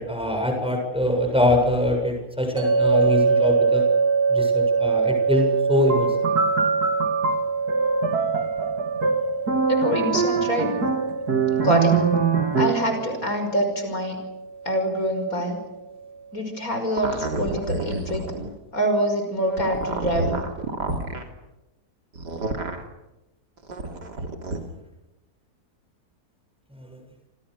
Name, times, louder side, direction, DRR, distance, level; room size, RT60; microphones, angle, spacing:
voice 1, 0.0-3.8 4.3-6.3 26.8-27.0, left 1 dB, 5° right, 3 dB, 7.2 m, -23 dB
sound 1, 2.6-15.7, right 5 dB, 30° right, 6.5 m, -25 dB
sound 2, 5.9-13.0, right 4 dB, 65° right, 3.1 m, -24 dB
voice 2, 9.7-10.7 11.6-11.9 12.6-14.2 14.6-15.6 16.3-18.2 18.7-20.4, equal, 55° left, 5 dB, 6.2 m, -25 dB
sound 3, 17.0-18.5 19.5-21.2 22.2-22.8 23.6-24.6, right 2 dB, 85° right, 3.9 m, -29 dB
28.5 x 27.5 x 6.7 m, 0.97 s
omnidirectional pair, 1.7 m